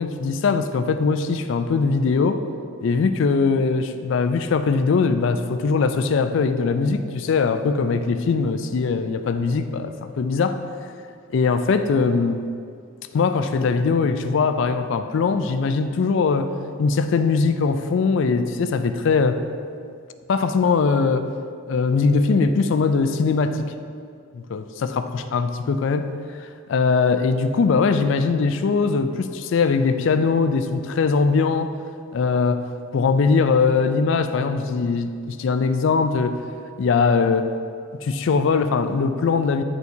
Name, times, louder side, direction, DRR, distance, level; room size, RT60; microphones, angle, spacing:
voice 1, 0.0-2.4 2.8-10.6 11.3-12.4 13.1-16.5 16.8-19.4 20.3-21.3 21.7-23.7 24.3-26.1 26.4-31.8 32.1-32.6 32.9-36.4 36.8-37.5 38.0-39.6, left 4 dB, 60° left, 9 dB, 0.3 m, -21 dB
9.4 x 4.5 x 2.7 m, 2.3 s
head